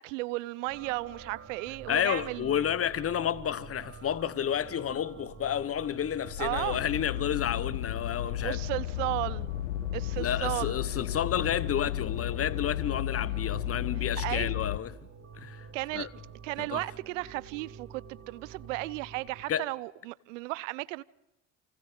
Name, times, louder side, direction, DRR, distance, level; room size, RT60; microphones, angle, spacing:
voice 1, 0.0-2.7 6.4-6.8 8.4-9.5 9.9-10.8 14.2-14.5 15.7-16.1 16.4-21.0, right 21 dB, 70° right, 0.7 m, -34 dB
sound 1, 0.7-19.4, right 6 dB, 35° right, 2.9 m, -48 dB
voice 2, 1.9-8.6 10.2-15.0 15.4-15.7 15.9-16.1 16.6-16.8 19.5-19.6, left 9 dB, 35° left, 1.1 m, -31 dB
sound 2, 6.2-14.8, left 13 dB, 80° left, 0.7 m, -33 dB
29.0 x 28.0 x 3.8 m
hypercardioid pair, 60°, 39 cm